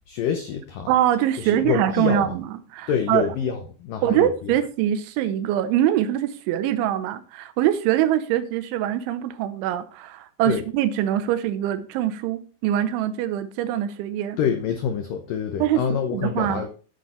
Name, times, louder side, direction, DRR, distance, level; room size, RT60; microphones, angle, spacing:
voice 1, 0.1-0.9 1.4-2.3 2.9-4.5 10.4-10.6 14.4-16.7, left 7 dB, 85° left, 1.9 m, -26 dB
voice 2, 0.9-3.3 4.0-14.4 15.6-16.7, right 11 dB, 90° right, 3.3 m, -23 dB
8.7 x 8.2 x 4.4 m
omnidirectional pair, 5.3 m